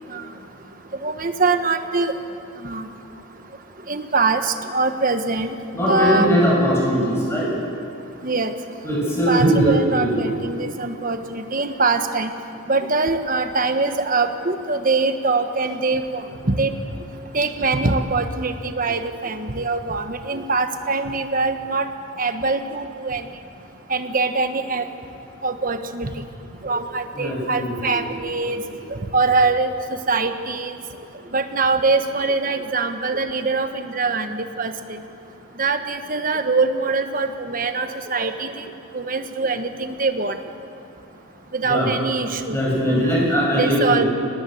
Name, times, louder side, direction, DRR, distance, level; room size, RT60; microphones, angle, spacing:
voice 1, 1.0-2.1 2.6-2.9 3.9-5.5 5.8-6.3 8.2-8.5 9.1-12.3 12.7-16.7 17.3-21.9 22.2-23.3 23.9-24.9 25.4-26.1 26.6-28.6 28.9-30.7 31.3-35.0 35.6-38.6 38.9-40.4 41.5-42.6 43.0-43.2 43.6-44.0, right 3 dB, 40° right, 7 dB, 1.3 m, -23 dB
voice 2, 5.7-7.5 8.8-10.3 27.1-27.9 28.5-28.6 41.6-41.9 42.5-44.1, equal, 10° left, -4 dB, 7.8 m, -20 dB
25.0 x 20.0 x 7.9 m, 2.6 s
head